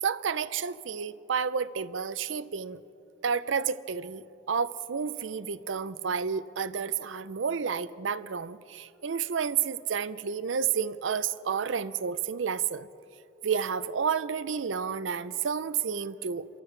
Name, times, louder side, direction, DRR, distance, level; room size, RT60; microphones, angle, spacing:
voice 1, 0.0-2.8 3.2-12.9 13.4-16.5, right 6 dB, 90° right, 14 dB, 0.5 m, -30 dB
29.5 x 14.5 x 3.3 m, 2.7 s
head